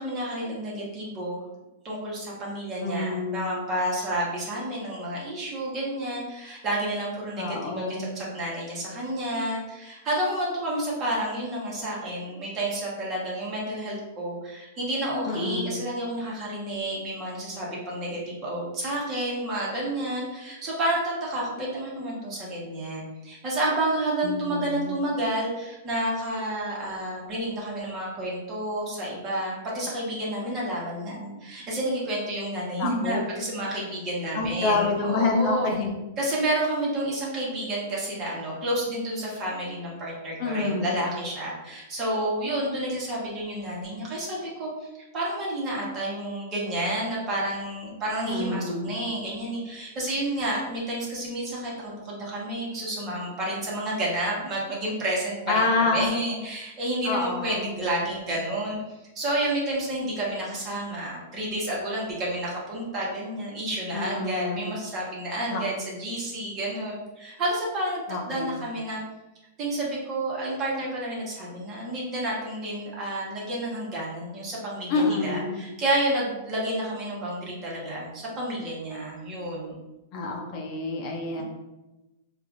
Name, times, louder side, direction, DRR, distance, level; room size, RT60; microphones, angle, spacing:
voice 1, 0.0-1.5 1.8-35.7 36.2-44.9 45.1-58.8 59.1-69.0 69.6-79.8 81.4-81.5, right 1 dB, 30° right, -5 dB, 1.2 m, -30 dB
voice 2, 2.8-3.6 7.4-8.2 15.2-15.8 24.2-24.9 32.8-33.2 34.3-35.9 40.4-41.0 48.2-49.0 55.5-56.1 57.0-57.6 63.9-64.8 65.5-65.6 68.1-68.6 74.9-75.7 80.1-81.4, left 3 dB, 40° left, 0 dB, 0.6 m, -27 dB
4.6 x 2.5 x 2.5 m, 1.0 s
supercardioid pair, 145°, 0 cm